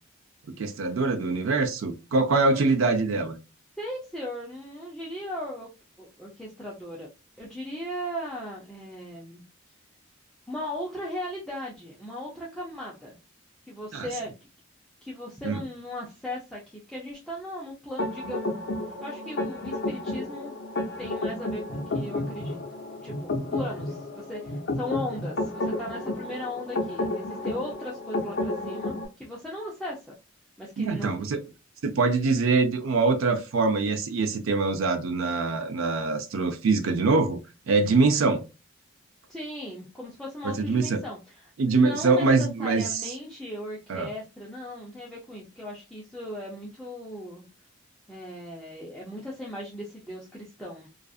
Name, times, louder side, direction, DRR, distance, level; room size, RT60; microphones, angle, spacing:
voice 1, 0.6-3.4 13.9-14.1 15.4-15.6 30.8-31.4 31.8-37.4 37.7-38.4 40.4-41.0 41.6-43.1 43.9-44.1, right 3 dB, 75° right, 0.4 m, -24 dB
voice 2, 2.3-2.6 3.8-5.7 6.0-7.1 7.4-9.4 10.5-13.2 13.7-14.3 15.0-18.5 19.0-20.5 21.0-22.6 23.0-30.1 30.6-31.1 39.3-47.4 48.1-50.9, left 1 dB, 5° left, 0.5 m, -37 dB
sound 1, 18.0-29.1, left 2 dB, 55° left, 0.7 m, -31 dB
2.5 x 2.4 x 2.3 m
head